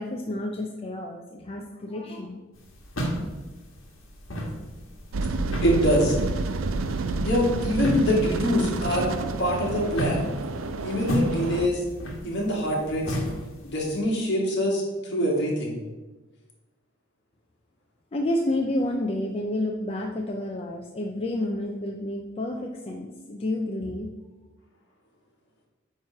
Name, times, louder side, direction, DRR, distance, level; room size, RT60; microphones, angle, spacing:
voice 1, 0.0-2.4 18.1-24.1, left 1 dB, 30° left, 1 dB, 0.5 m, -30 dB
sound 1, 2.5-14.0, right 1 dB, 75° left, 1.6 m, -34 dB
sound 2, 5.1-11.7, right 3 dB, 75° right, 0.5 m, -29 dB
voice 2, 5.6-6.2 7.2-9.1 9.4-10.3 10.8-11.8 12.2-13.2 13.6-15.8, equal, 60° left, -3 dB, 2.1 m, -24 dB
9.2 x 3.2 x 5.7 m, 1.2 s
head